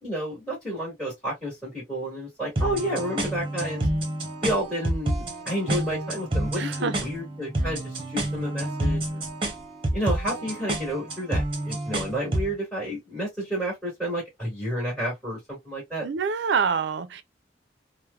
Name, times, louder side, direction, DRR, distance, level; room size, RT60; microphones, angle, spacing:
voice 1, 0.0-3.9 4.4-9.2 9.9-16.1, equal, 5° left, 1.7 m, -31 dB
sound 1, 2.6-12.5, right 1 dB, 30° right, 0.8 m, -29 dB
voice 2, 6.6-6.9 16.0-17.2, right 6 dB, 75° right, 0.4 m, -26 dB
3.2 x 2.1 x 2.3 m
head